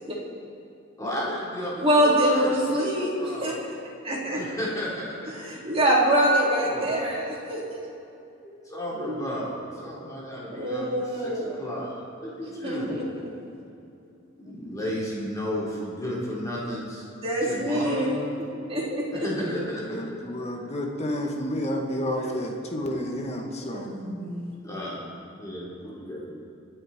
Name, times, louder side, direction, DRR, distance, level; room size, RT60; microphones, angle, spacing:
voice 1, 1.0-3.5 4.3-5.3 6.4-7.0 8.4-13.0 14.4-17.1 17.4-18.2 19.1-20.2 20.6-20.7 24.6-26.3, equal, 15° left, -6 dB, 4.0 m, -33 dB
voice 2, 1.8-3.5 4.0-4.4 5.4-7.8 9.0-9.2 10.5-11.6 12.6-13.0 17.2-18.2 18.7-19.3 22.1-22.3 23.7-24.5, right 1 dB, 30° right, -5 dB, 3.6 m, -25 dB
voice 3, 19.8-23.9, left 1 dB, 35° left, 1 dB, 1.8 m, -30 dB
27.0 x 9.7 x 4.5 m, 2.7 s
head